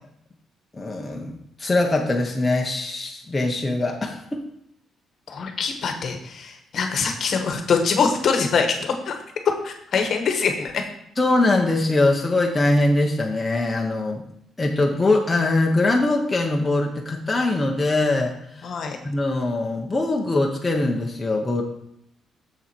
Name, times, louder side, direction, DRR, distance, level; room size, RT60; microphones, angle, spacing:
voice 1, 0.7-4.4 11.2-14.2 14.6-18.7 19.0-21.6, left 2 dB, 15° left, 0 dB, 0.8 m, -22 dB
voice 2, 5.3-9.1 9.6-10.9 18.6-19.0, left 5 dB, 45° left, 5 dB, 1.2 m, -24 dB
7.1 x 7.0 x 4.4 m, 0.74 s
cardioid pair, 165°, 0 cm